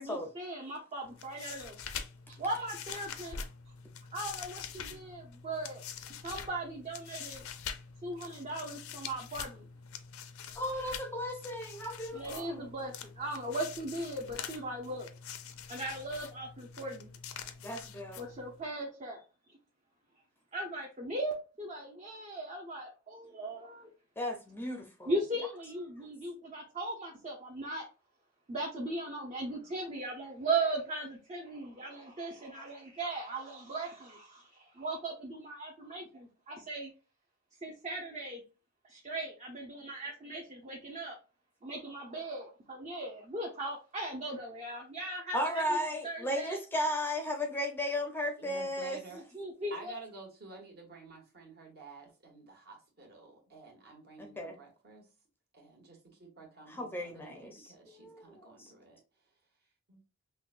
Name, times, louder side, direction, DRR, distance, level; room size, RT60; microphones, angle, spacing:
voice 1, 0.0-1.8 2.3-3.5 4.1-5.8 6.2-7.4 8.0-9.7 12.1-15.1 15.7-17.1 18.2-19.2 20.5-23.9 25.1-27.9 28.5-36.9 37.6-38.4 38.8-41.2 41.6-45.8 46.0-46.6 49.1-49.9, right 2 dB, 35° right, 0.7 m, -38 dB
sound 1, 1.0-18.6, left 7 dB, 70° left, 0.5 m, -45 dB
voice 2, 10.5-12.6 17.6-18.2 24.2-25.1 45.3-49.0 54.2-54.5 56.7-58.7, equal, 10° left, 0.6 m, -35 dB
voice 3, 48.4-49.2 49.7-55.0 55.5-59.0 59.9-60.0, right 3 dB, 50° right, 1.3 m, -51 dB
5.7 x 2.2 x 2.4 m
head